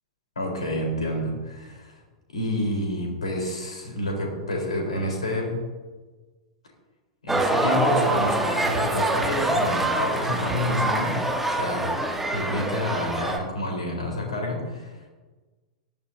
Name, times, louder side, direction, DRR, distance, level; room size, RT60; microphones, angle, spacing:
voice 1, 0.4-2.0 2.3-5.6 7.2-11.2 11.5-12.0 12.3-15.1, left 1 dB, 70° left, 0 dB, 3.9 m, -28 dB
sound 1, 7.3-13.4, right 2 dB, 5° right, 1.3 m, -25 dB
18.5 x 13.0 x 2.7 m, 1.3 s
figure-of-eight pair, 95°, 4 cm